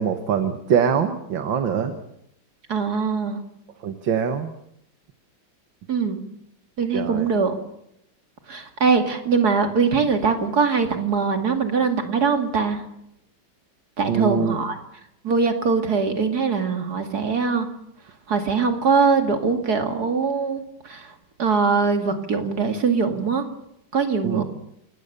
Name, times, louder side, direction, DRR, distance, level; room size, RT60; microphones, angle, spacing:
voice 1, 0.0-2.0 3.8-4.5 6.9-7.3 14.1-14.6 24.2-24.4, right 7 dB, 65° right, 8 dB, 2.1 m, -23 dB
voice 2, 2.7-3.4 5.9-6.2 6.8-7.6 8.5-12.8 14.0-14.8 15.2-17.7 18.3-21.1 21.4-23.5 23.9-24.4, right 5 dB, 50° right, 6 dB, 2.6 m, -22 dB
27.5 x 18.5 x 6.8 m, 0.79 s
omnidirectional pair, 2.3 m